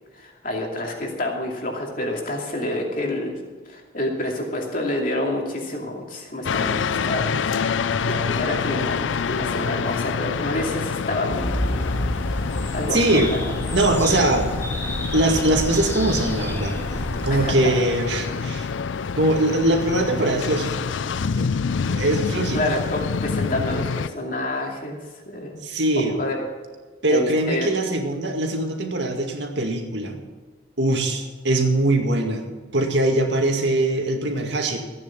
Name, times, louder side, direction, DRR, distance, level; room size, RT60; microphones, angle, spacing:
voice 1, 0.1-3.4 3.7-7.6 8.0-13.4 14.1-14.2 17.3-17.7 18.2-18.4 22.5-25.0 25.3-25.7 26.2-26.5 27.1-27.7, left 1 dB, 45° left, 0 dB, 2.5 m, -28 dB
sound 1, 6.4-24.1, left 5 dB, 80° left, 0.5 m, -27 dB
sound 2, 11.3-17.5, equal, 15° left, 1.7 m, -29 dB
voice 2, 12.9-13.3 13.7-14.5 15.1-16.8 17.2-18.7 19.2-20.8 21.4-21.5 21.9-22.6 25.6-26.2 27.0-30.2 30.8-32.5 32.7-34.8, right 1 dB, 70° right, 3 dB, 2.1 m, -22 dB
14.5 x 9.3 x 6.0 m, 1.4 s
head